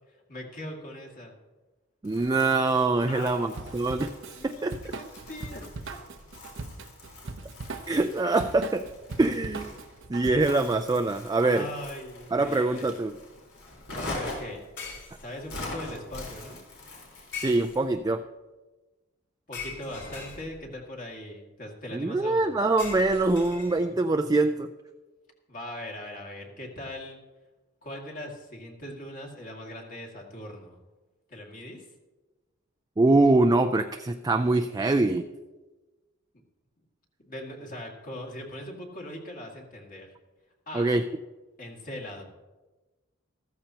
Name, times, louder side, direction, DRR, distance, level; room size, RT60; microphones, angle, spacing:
voice 1, 0.3-1.3 3.1-3.7 4.3-6.0 11.4-12.9 13.9-14.6 15.2-16.6 19.5-22.6 25.5-27.2 27.8-30.8 31.3-31.8 37.2-40.1 40.7-40.9 41.6-42.2, left 1 dB, 45° left, 0 dB, 2.1 m, -40 dB
Crumpling crinkling, 2.0-17.8, left 2 dB, 85° left, 4.0 m, -43 dB
voice 2, 2.0-4.1 4.4-4.8 7.9-8.8 9.2-9.7 10.1-11.7 12.3-13.2 17.4-18.2 21.9-24.7 33.0-35.3 40.7-41.0, right 2 dB, 20° right, 6 dB, 0.3 m, -24 dB
Drum kit / Drum, 3.5-10.9, right 3 dB, 65° right, 0.7 m, -40 dB
sound 1, 14.8-15.6 17.3-18.1 19.5-20.8 22.8-24.1, left 5 dB, 60° left, 4.6 m, -41 dB
14.0 x 14.0 x 2.9 m, 1.2 s
head